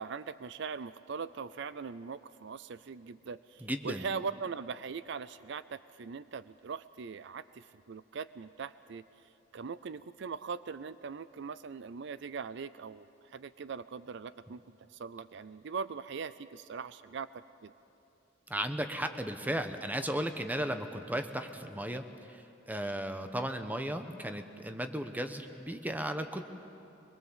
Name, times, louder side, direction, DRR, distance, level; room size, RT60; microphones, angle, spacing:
voice 1, 0.0-9.0 9.5-14.6 14.9-17.3 17.6-17.7, right 5 dB, 65° right, 15 dB, 0.5 m, -41 dB
voice 2, 3.6-4.1 18.5-26.4, right 1 dB, 10° right, 7 dB, 1.0 m, -35 dB
23.5 x 22.0 x 7.4 m, 2.7 s
head